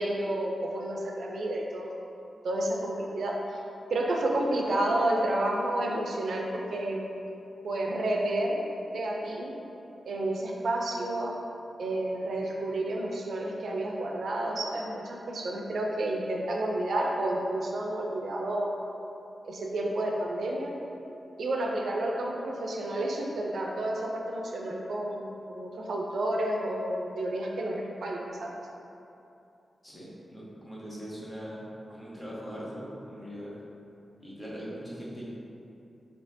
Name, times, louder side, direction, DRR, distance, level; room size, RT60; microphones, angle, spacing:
voice 1, 0.0-2.0 2.4-3.6 3.9-7.1 7.6-8.6 8.9-9.5 10.0-11.3 11.8-18.8 19.4-20.7 21.4-28.5, right 1 dB, 80° right, -1 dB, 0.4 m, -30 dB
voice 2, 29.8-31.6 31.9-33.5 34.2-35.3, equal, 15° left, -7 dB, 0.9 m, -41 dB
4.3 x 2.7 x 2.6 m, 2.8 s
wide cardioid pair, 125°, 0 cm